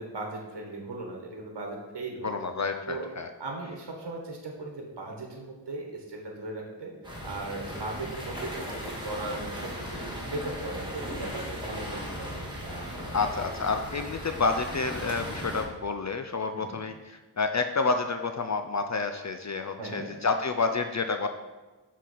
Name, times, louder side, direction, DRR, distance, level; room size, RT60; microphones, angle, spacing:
voice 1, 0.0-2.4 2.9-3.1 3.4-13.1 16.5-16.8 19.8-20.1, right 2 dB, 70° right, 0 dB, 1.2 m, -38 dB
voice 2, 2.2-3.3 13.1-21.3, left 4 dB, 45° left, 7 dB, 0.4 m, -29 dB
sound 1, 7.0-15.6, equal, 10° right, 1.6 m, -37 dB
6.3 x 4.1 x 4.1 m, 1.2 s
wide cardioid pair, 50°, 43 cm